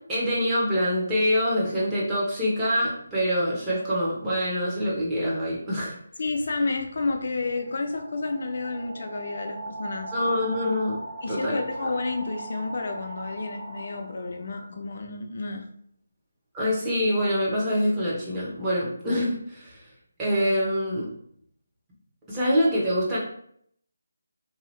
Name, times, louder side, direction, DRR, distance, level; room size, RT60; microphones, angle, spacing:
voice 1, 0.1-5.9 10.1-11.0 11.3-11.6 16.5-19.8 20.2-21.1 22.3-23.2, equal, 10° right, -7 dB, 0.8 m, -25 dB
voice 2, 6.2-10.1 11.2-15.6, left 3 dB, 50° left, 4 dB, 0.4 m, -30 dB
sound 1, 7.0-14.6, right 2 dB, 50° right, 1.3 m, -39 dB
2.7 x 2.4 x 3.1 m, 0.66 s
figure-of-eight pair, 165°, 0 cm